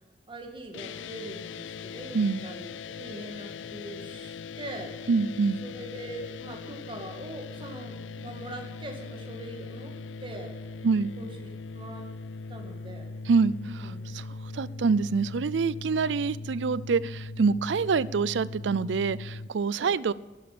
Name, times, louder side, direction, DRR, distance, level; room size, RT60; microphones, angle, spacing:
voice 1, 0.3-4.9 5.6-9.9 10.2-10.5 11.2-11.5 11.7-12.1 12.5-13.1 13.8-14.0 19.8-20.0, right 1 dB, 30° right, 3 dB, 2.2 m, -42 dB
Dist Chr Arock up, 0.7-19.5, left 4 dB, 90° left, 0.5 m, -40 dB
voice 2, 5.1-5.6 10.8-11.1 13.3-14.2 14.5-20.1, right 4 dB, 75° right, 20 dB, 0.5 m, -26 dB
12.0 x 10.0 x 8.5 m, 1.3 s
head